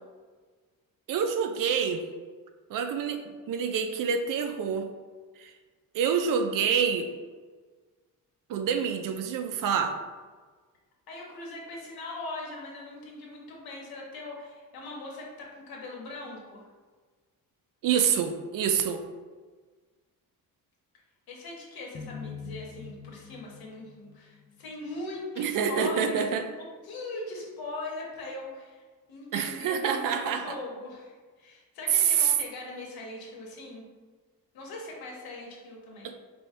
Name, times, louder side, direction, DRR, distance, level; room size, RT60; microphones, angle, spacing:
voice 1, 1.1-2.0 2.7-3.2 3.5-4.9 5.4-5.5 5.9-7.1 8.5-10.0 17.8-19.0 25.4-26.4 29.3-30.6 31.9-32.3 36.0-36.2, right 7 dB, 65° right, 6 dB, 0.5 m, -27 dB
voice 2, 11.1-16.7 21.3-26.5 26.8-33.8 34.5-36.1, left 2 dB, 85° left, -1 dB, 1.3 m, -40 dB
sound 1, 21.9-25.2, left 6 dB, 35° left, 0.4 m, -44 dB
4.4 x 3.5 x 3.2 m, 1.4 s
cardioid pair, 170°, 35 cm